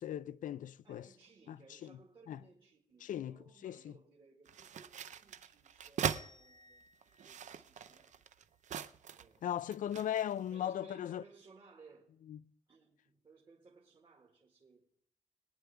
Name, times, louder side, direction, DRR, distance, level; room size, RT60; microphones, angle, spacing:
voice 1, 0.0-1.1 1.5-2.0 2.3-2.4 3.0-3.9 9.4-11.2 12.3-12.4, left 10 dB, 80° left, 0.5 m, -38 dB
voice 2, 0.8-6.8 7.3-8.2 9.2-9.5 10.1-12.2 12.7-14.9, right 4 dB, 35° right, 1.8 m, -62 dB
sound 1, 4.5-6.3 7.0-9.4 9.7-10.4, right 8 dB, 65° right, 0.6 m, -40 dB
sound 2, 6.1-8.8, left 2 dB, 30° left, 0.5 m, -60 dB
22.0 x 9.6 x 3.4 m
wide cardioid pair, 155°, 13 cm